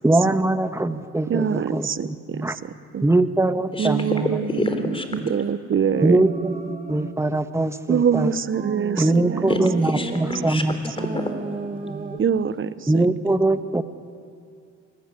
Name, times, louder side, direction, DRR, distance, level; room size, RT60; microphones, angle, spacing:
voice 1, 0.0-2.6 3.0-4.4 4.8-5.3 6.0-8.3 9.0-10.9 12.9-13.8, right 2 dB, 10° right, 10 dB, 1.3 m, -22 dB
voice 2, 1.3-3.0 3.8-6.3 7.9-9.8 10.4-10.5 10.9-11.0 12.2-13.1, right 7 dB, 40° right, 16 dB, 0.9 m, -25 dB
voice 3, 4.6-5.0 9.5-9.6 9.9-10.6 11.1-11.3 11.8-12.2, left 2 dB, 20° left, 7 dB, 3.7 m, -27 dB
sound 1, 5.9-7.2 8.5-10.5 11.0-12.2, right 3 dB, 25° right, 1.8 m, -32 dB
26.5 x 19.5 x 9.7 m, 2.3 s
cardioid pair, 90°, 30 cm